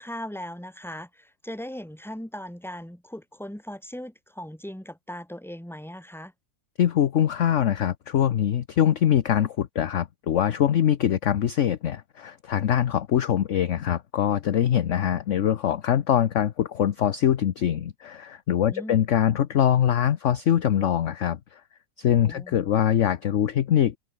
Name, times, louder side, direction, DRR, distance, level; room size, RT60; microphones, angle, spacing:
voice 1, 0.0-6.3 18.7-19.0 22.2-22.6, equal, ahead, 2.7 m, -38 dB
voice 2, 6.8-21.6 22.0-24.0, left 10 dB, 55° left, 0.9 m, -23 dB
omnidirectional pair, 2.0 m